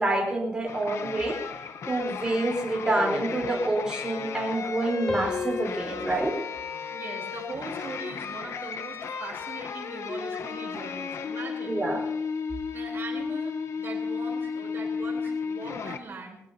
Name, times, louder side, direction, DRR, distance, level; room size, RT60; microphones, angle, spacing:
voice 1, 0.0-1.4 1.9-6.3 11.6-12.0, right 2 dB, 15° right, -2 dB, 3.8 m, -27 dB
sound 1, 0.7-16.0, left 5 dB, 70° left, 1.0 m, -34 dB
sound 2, 2.9-4.8 5.1-7.6 8.1-8.5, left 2 dB, 15° left, 3.4 m, -38 dB
voice 2, 5.9-6.2 6.9-11.8 12.7-16.4, right 3 dB, 50° right, 0 dB, 3.7 m, -41 dB
21.0 x 18.5 x 2.8 m, 0.81 s
wide cardioid pair, 155°, 5 cm